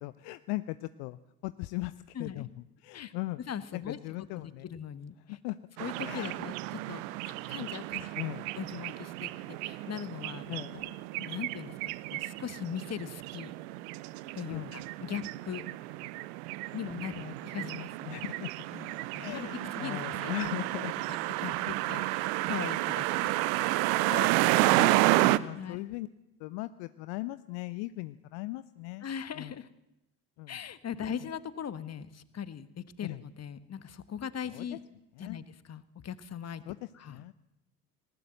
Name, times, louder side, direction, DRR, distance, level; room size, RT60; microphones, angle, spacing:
voice 1, 0.0-1.2 1.4-1.9 2.2-2.5 2.8-3.4 3.7-4.6 5.3-5.6 6.0-6.4 8.1-8.5 10.5-10.7 14.5-14.7 15.0-15.1 17.1-18.5 19.1-21.2 23.0-23.2 24.0-26.1 26.4-29.1 29.4-29.5 30.4-30.6 33.0-33.2 34.5-34.6 35.2-35.4 36.7-36.8 37.1-37.3, left 19 dB, 55° left, 14 dB, 0.8 m, -39 dB
voice 2, 2.1-2.4 2.9-3.1 3.4-5.4 5.8-8.1 8.5-13.5 14.3-15.6 16.7-17.9 18.7-20.3 21.4-23.3 25.5-25.8 29.0-29.7 30.5-34.8 35.2-36.6 36.9-37.2, left 8 dB, 30° left, 14 dB, 1.4 m, -40 dB
sound 1, 5.8-25.4, right 19 dB, 60° right, 0.9 m, -31 dB
19.0 x 19.0 x 7.8 m, 0.91 s
figure-of-eight pair, 55°, 50 cm